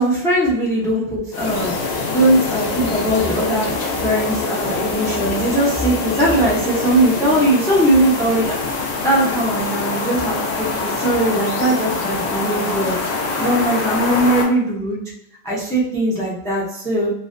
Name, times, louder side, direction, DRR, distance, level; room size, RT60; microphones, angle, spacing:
voice 1, 0.0-12.9 13.4-15.0 15.4-17.1, right 1 dB, 5° left, -4 dB, 0.3 m, -20 dB
sound 1, 1.3-14.4, left 3 dB, 80° left, 0.8 m, -24 dB
2.4 x 2.1 x 2.4 m, 0.78 s
omnidirectional pair, 1.1 m